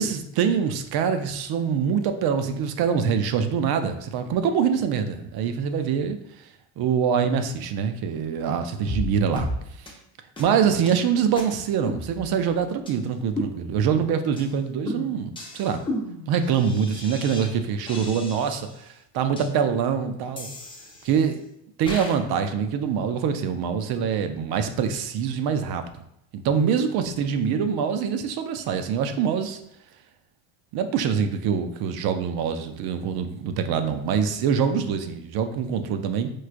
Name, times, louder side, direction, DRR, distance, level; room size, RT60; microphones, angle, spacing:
voice 1, 0.0-6.2 6.8-9.5 10.4-15.8 16.3-20.5 21.0-21.4 21.8-25.8 26.3-29.6 30.7-36.3, right 7 dB, 60° right, 8 dB, 0.5 m, -24 dB
sound 1, 8.9-9.1 9.4-9.6 9.9-10.0 10.4-10.5 10.9-11.0 11.4-11.5 11.9-12.5 12.9-13.0 13.4-14.0 14.4-14.5 14.9-17.5 17.9-18.8 19.4-19.5 20.4-21.3 21.9-22.2, left 1 dB, 10° left, 0.6 m, -34 dB
4.6 x 2.3 x 2.4 m, 0.77 s
cardioid pair, 120°, 43 cm